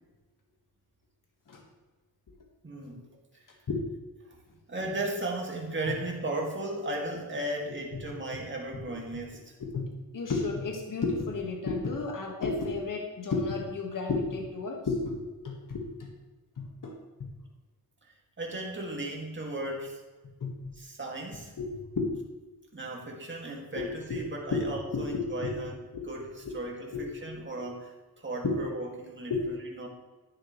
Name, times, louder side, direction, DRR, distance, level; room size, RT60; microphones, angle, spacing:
voice 1, 2.6-3.0 4.7-9.5 18.4-20.0 20.8-21.5 22.7-25.8 26.1-29.9, right 2 dB, 30° right, -1 dB, 2.3 m, -36 dB
voice 2, 9.6-15.2 15.4-16.1 16.6-17.3 20.4-20.7 21.6-21.7 22.0-22.1 23.8-24.2 24.5-25.6 25.9-26.1 26.4-26.5 26.9-27.0 27.6-27.7 28.4-28.6 29.3-29.4, left 3 dB, 60° left, 1 dB, 1.8 m, -32 dB
11.0 x 10.5 x 3.2 m, 1.2 s
wide cardioid pair, 95°, 37 cm